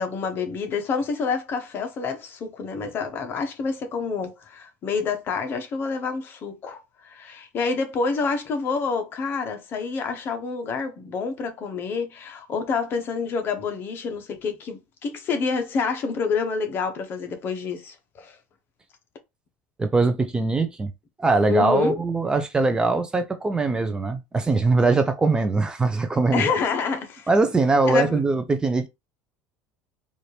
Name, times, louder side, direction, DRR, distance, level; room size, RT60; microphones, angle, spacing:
voice 1, 0.0-18.4 21.5-22.0 26.3-27.3 27.9-28.2, left 5 dB, 40° left, 1.0 m, -28 dB
voice 2, 19.8-20.9 21.2-26.5 27.3-28.9, right 3 dB, 15° right, 0.5 m, -21 dB
4.2 x 2.5 x 3.3 m
cardioid pair, 135°, 6 cm